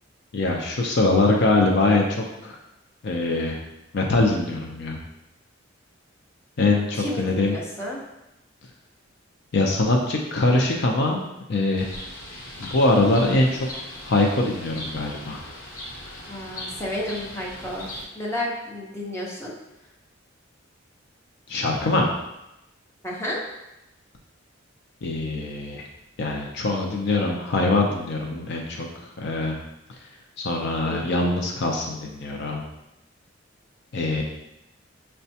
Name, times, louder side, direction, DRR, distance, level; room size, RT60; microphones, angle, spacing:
voice 1, 0.3-2.6 3.0-3.6 3.9-5.0 6.6-7.6 9.5-11.2 11.5-11.9 12.6-13.7 14.0-15.4 21.5-22.1 25.0-25.8 26.2-29.6 30.4-32.6 33.9-34.2, left 2 dB, 55° left, 0 dB, 0.5 m, -23 dB
voice 2, 6.9-8.0 16.3-19.5 23.0-23.4 30.8-31.5, left 1 dB, 15° left, -4 dB, 0.7 m, -32 dB
Bird, 11.8-18.0, left 1 dB, 85° left, 1.0 m, -39 dB
5.8 x 2.2 x 2.7 m, 0.91 s
head